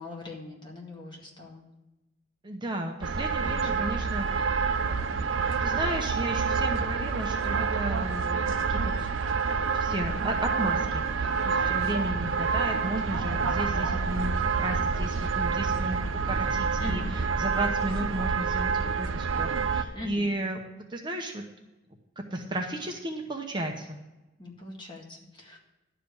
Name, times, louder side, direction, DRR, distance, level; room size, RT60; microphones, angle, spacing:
voice 1, 0.0-1.6 3.4-3.8 16.8-17.1 19.9-20.3 24.4-25.6, left 2 dB, 25° left, -2 dB, 2.0 m, -41 dB
voice 2, 2.4-4.6 5.6-8.4 8.7-9.1 9.7-16.0 16.2-20.6 20.9-21.4 22.3-24.0, right 1 dB, 25° right, 2 dB, 0.9 m, -34 dB
sound 1, 3.0-19.8, right 5 dB, 80° right, 0.6 m, -28 dB
11.5 x 5.0 x 8.4 m, 1.0 s
head